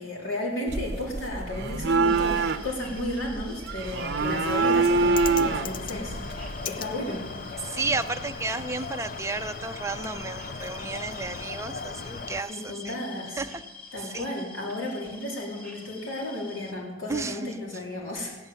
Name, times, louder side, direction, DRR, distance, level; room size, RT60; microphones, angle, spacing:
voice 1, 0.0-7.2 7.5-7.7 12.5-13.4 13.9-18.4, left 1 dB, 85° left, -2 dB, 3.6 m, -33 dB
sound 1, 0.7-6.7, right 3 dB, 55° right, 0.7 m, -26 dB
sound 2, 2.0-16.7, left 3 dB, 10° left, 1.4 m, -46 dB
Bird, 4.2-12.4, left 5 dB, 45° left, 0.5 m, -37 dB
voice 2, 7.6-13.0 13.4-13.6 14.0-14.3 17.1-17.5, right 3 dB, 15° right, 7 dB, 0.6 m, -32 dB
15.5 x 10.0 x 7.0 m, 1.2 s
head